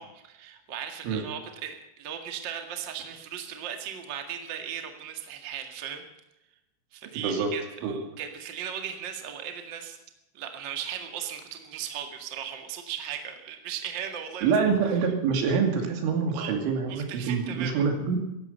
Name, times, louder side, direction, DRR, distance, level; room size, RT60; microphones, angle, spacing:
voice 1, 0.0-6.0 6.9-10.0 10.3-14.5 16.3-16.5 16.9-17.8, right 9 dB, 60° right, 5 dB, 1.1 m, -37 dB
voice 2, 7.1-7.5 7.8-8.0 14.4-18.2, right 5 dB, 80° right, 4 dB, 5.0 m, -26 dB
17.5 x 14.5 x 5.6 m, 0.91 s
omnidirectional pair, 5.5 m